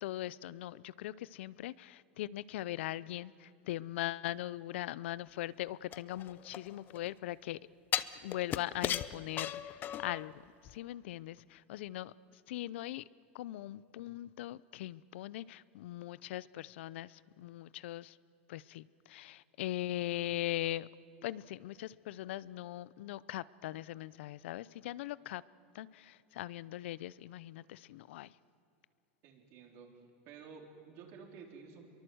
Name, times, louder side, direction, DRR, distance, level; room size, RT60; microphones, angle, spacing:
voice 1, 0.0-7.6 8.2-12.1 12.5-13.0 13.3-18.2 18.5-20.9 21.2-25.4 25.7-28.3, left 14 dB, 75° left, 20 dB, 0.6 m, -40 dB
sound 1, 5.9-7.1 7.9-10.3 10.7-10.8, left 11 dB, 30° left, 0.7 m, -36 dB
voice 2, 29.2-29.9 30.3-31.9, right 5 dB, 45° right, 2 dB, 4.0 m, -52 dB
26.0 x 23.0 x 7.9 m, 2.6 s
supercardioid pair, 140°, 6 cm